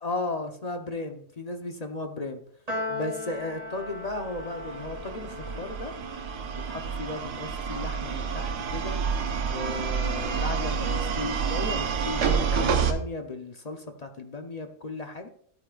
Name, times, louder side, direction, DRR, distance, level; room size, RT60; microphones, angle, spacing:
voice 1, 0.0-2.4 2.9-5.9 6.6-9.0 9.4-15.3, left 2 dB, 40° left, 5 dB, 0.5 m, -35 dB
Piano, 2.7-9.2, left 2 dB, 25° right, 2.4 m, -40 dB
sound 1, 4.1-12.9, right 6 dB, 80° right, 1.5 m, -29 dB
13.0 x 8.8 x 2.4 m, 0.63 s
omnidirectional pair, 1.7 m